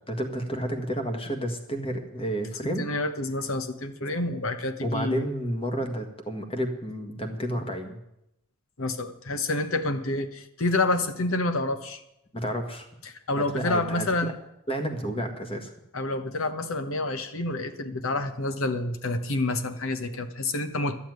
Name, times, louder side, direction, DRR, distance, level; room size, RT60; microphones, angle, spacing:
voice 1, 0.1-2.9 3.9-4.1 4.8-8.0 12.3-12.9 13.5-14.1 14.7-15.7, equal, 25° left, 5 dB, 1.6 m, -30 dB
voice 2, 2.8-5.3 8.8-12.0 13.0-14.4 15.9-21.0, left 2 dB, 70° left, 9 dB, 1.1 m, -28 dB
12.5 x 7.1 x 9.5 m, 0.83 s
head